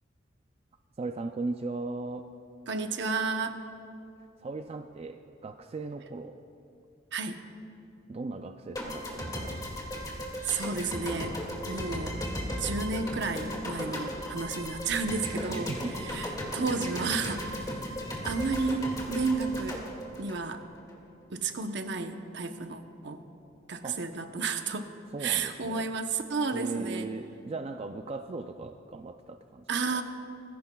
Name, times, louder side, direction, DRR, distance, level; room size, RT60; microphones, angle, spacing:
voice 1, 1.0-2.3 4.4-6.4 8.1-9.6 15.3-16.0 23.8-24.0 25.1-25.9 26.5-29.7 29.9-30.0, right 3 dB, 35° right, 7 dB, 0.4 m, -37 dB
voice 2, 2.7-3.6 7.1-7.4 10.4-11.4 11.7-12.2 12.6-15.7 16.0-18.0 18.2-19.8 20.2-20.6 21.3-23.2 23.7-24.9 25.2-27.1 29.7-30.0, right 4 dB, 65° right, 7 dB, 0.8 m, -32 dB
sound 1, 8.7-20.9, equal, 20° left, 2.1 m, -36 dB
20.5 x 15.5 x 2.3 m, 2.7 s
head